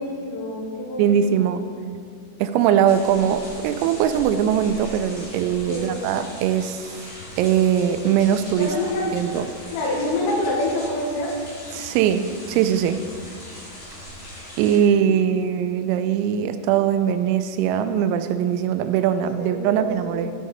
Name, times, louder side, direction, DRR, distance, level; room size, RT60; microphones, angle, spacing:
voice 1, 0.0-1.5 5.7-5.9 8.6-9.1 9.7-11.4 19.4-20.2, left 1 dB, 75° left, -2 dB, 3.8 m, -27 dB
voice 2, 1.0-1.6 2.4-6.9 7.4-8.7 9.1-9.5 11.7-13.1 14.6-20.3, right 9 dB, 85° right, 10 dB, 3.2 m, -21 dB
sound 1, 2.9-14.8, left 1 dB, 50° left, 1.9 m, -40 dB
14.5 x 5.0 x 4.0 m, 2.1 s
omnidirectional pair, 6.0 m